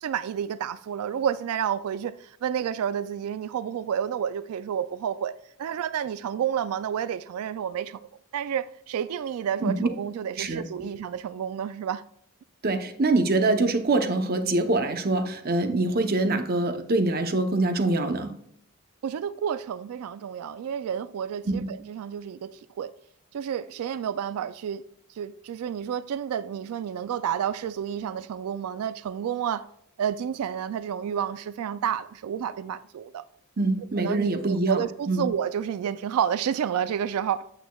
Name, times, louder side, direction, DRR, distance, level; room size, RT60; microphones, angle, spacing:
voice 1, 0.0-5.3 5.6-12.0 19.0-22.9 23.3-24.8 25.2-29.7 30.0-33.2 34.0-37.4, right 8 dB, 80° right, 0.3 m, -30 dB
voice 2, 10.4-10.9 12.6-18.4 21.5-21.7 33.6-34.8 35.1-35.3, right 2 dB, 45° right, 0.7 m, -24 dB
8.7 x 8.2 x 2.3 m
head